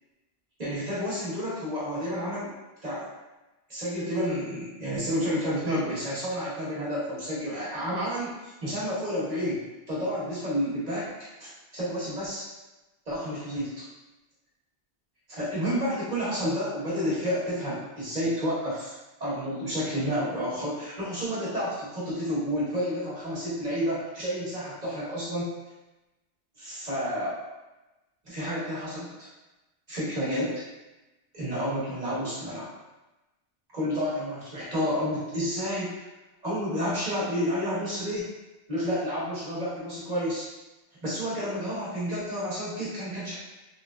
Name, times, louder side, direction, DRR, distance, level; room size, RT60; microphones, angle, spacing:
voice 1, 0.6-2.5 2.8-3.1 3.7-8.3 8.6-11.1 11.4-12.4 13.0-13.8 15.3-25.5 26.6-27.4 28.2-29.3 29.9-30.6 31.3-32.7 33.7-36.0 36.4-38.3 38.7-40.5 41.0-43.4, equal, 40° right, -10 dB, 1.4 m, -30 dB
3.3 x 2.5 x 2.4 m, 1.0 s
omnidirectional pair, 1.1 m